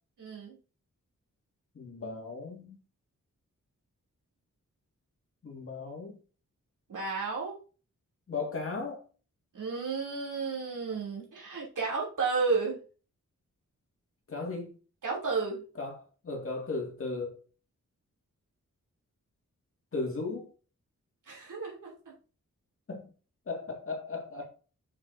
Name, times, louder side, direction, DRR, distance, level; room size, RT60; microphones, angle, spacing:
voice 1, 0.2-0.5 6.9-7.6 9.5-12.8 15.0-15.6 21.3-22.1, right 4 dB, 80° right, 2.9 m, -32 dB
voice 2, 1.7-2.8 5.4-6.2 8.3-9.0 14.3-14.7 15.8-16.0 16.2-17.4 19.9-20.5 22.9-23.1 23.5-24.4, left 3 dB, 45° left, 2.0 m, -36 dB
6.6 x 5.6 x 2.6 m
wide cardioid pair, 180°, 31 cm